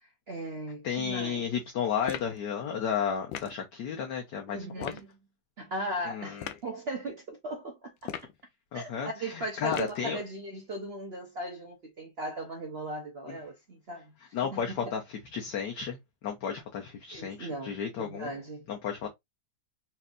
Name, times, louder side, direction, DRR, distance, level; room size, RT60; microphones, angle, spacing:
voice 1, 0.0-1.5 4.5-5.2 5.6-8.1 8.7-15.0 17.1-18.7, right 1 dB, 75° right, 0.5 m, -38 dB
voice 2, 0.8-5.0 6.1-6.5 8.7-10.2 13.3-13.4 14.3-16.0 16.2-18.3 18.7-19.1, left 7 dB, 65° left, 1.3 m, -33 dB
sound 1, 2.1-2.4 3.3-3.6 4.8-5.1 6.4-6.6 8.0-8.4 9.7-10.1, left 10 dB, 80° left, 1.4 m, -37 dB
4.3 x 3.2 x 2.4 m
omnidirectional pair, 2.1 m